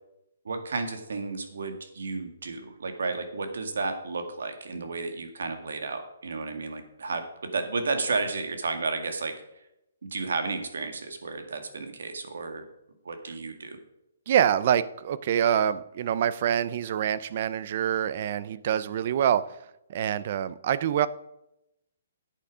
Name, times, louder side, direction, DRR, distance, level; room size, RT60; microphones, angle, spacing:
voice 1, 0.5-7.2 7.5-9.3 10.1-12.6 13.1-13.8, right 3 dB, 80° right, 7 dB, 2.0 m, -32 dB
voice 2, 14.3-19.6 19.9-21.1, right 9 dB, 35° right, 16 dB, 0.5 m, -25 dB
10.0 x 8.6 x 4.9 m, 0.86 s
hypercardioid pair, 175°, 0 cm